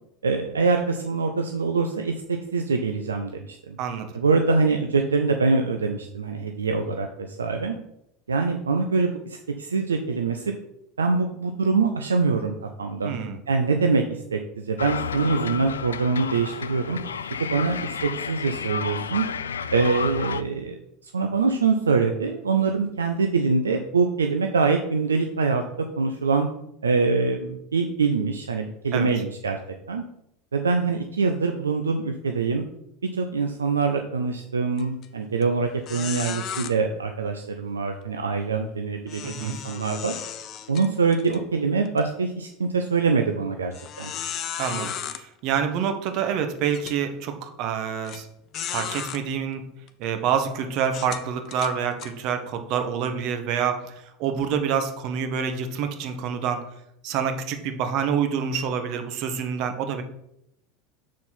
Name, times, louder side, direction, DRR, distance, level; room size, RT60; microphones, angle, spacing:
voice 1, 0.2-3.8 4.1-7.8 8.3-10.5 11.0-13.2 13.5-17.0 17.4-19.3 19.7-25.6 26.0-26.5 26.8-29.6 29.9-30.0 30.5-32.6 33.1-40.2 40.7-44.1, right 4 dB, 90° right, 5 dB, 0.5 m, -24 dB
voice 2, 3.8-4.1 13.0-13.4 28.9-29.1 39.2-39.6 44.6-48.3 48.7-49.6 50.0-56.7 57.0-60.0, right 7 dB, 55° right, 7 dB, 1.1 m, -27 dB
sound 1, 14.8-20.4, left 7 dB, 85° left, 0.3 m, -31 dB
sound 2, 34.8-35.0 35.4-35.5 35.8-36.7 39.1-41.4 41.8-42.0 42.6-42.7 43.7-45.2 46.1-46.2 46.7-47.0 48.0-48.2 48.5-49.2 49.9-50.0 50.8-52.1, left 9 dB, 45° left, 0.7 m, -34 dB
6.3 x 4.3 x 5.7 m, 0.78 s
hypercardioid pair, 85°, 0 cm